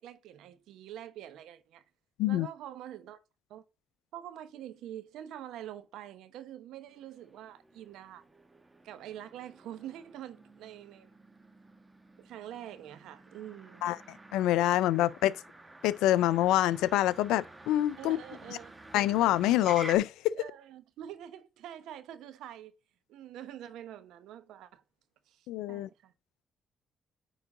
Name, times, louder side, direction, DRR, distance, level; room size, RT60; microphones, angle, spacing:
voice 1, 0.0-1.8 2.3-3.2 3.5-3.6 4.1-8.2 8.8-11.1 12.2-13.8 18.0-18.7 20.3-22.7 23.1-24.8 25.3-26.1, right 11 dB, 80° right, 0.8 m, -45 dB
Motor vehicle (road), 6.9-20.0, right 2 dB, 20° right, 1.3 m, -50 dB
voice 2, 14.3-15.3 15.8-18.2 18.9-20.3 25.5-25.9, left 14 dB, 85° left, 0.4 m, -26 dB
9.1 x 3.9 x 3.7 m
supercardioid pair, 60°, 0 cm